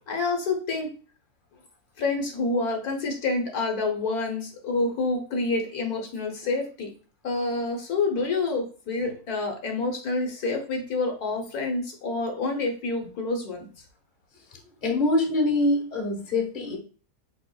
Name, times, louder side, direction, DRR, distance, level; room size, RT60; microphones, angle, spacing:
voice 1, 0.1-0.9 2.0-6.9 7.2-13.8, left 3 dB, 75° left, 2 dB, 1.5 m, -28 dB
voice 2, 14.8-16.8, left 2 dB, 35° left, 1 dB, 1.3 m, -24 dB
4.9 x 4.4 x 2.3 m, 0.38 s
omnidirectional pair, 1.6 m